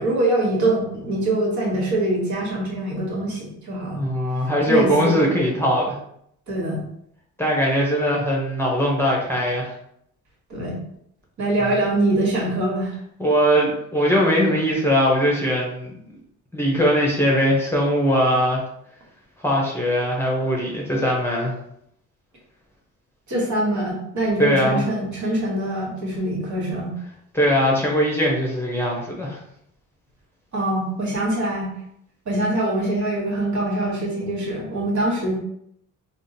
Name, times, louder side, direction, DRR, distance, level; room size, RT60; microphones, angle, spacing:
voice 1, 0.0-4.1 4.7-5.4 6.5-6.8 10.5-10.8 11.4-12.9 23.3-27.0 30.5-31.7 32.2-35.4, right 1 dB, 55° right, -3 dB, 1.4 m, -23 dB
voice 2, 3.9-6.0 7.4-9.7 13.2-16.0 16.5-18.6 19.4-21.5 24.4-24.8 27.3-29.4, equal, 5° left, -3 dB, 0.8 m, -20 dB
3.5 x 2.0 x 2.7 m, 0.72 s
cardioid pair, 70°, 35 cm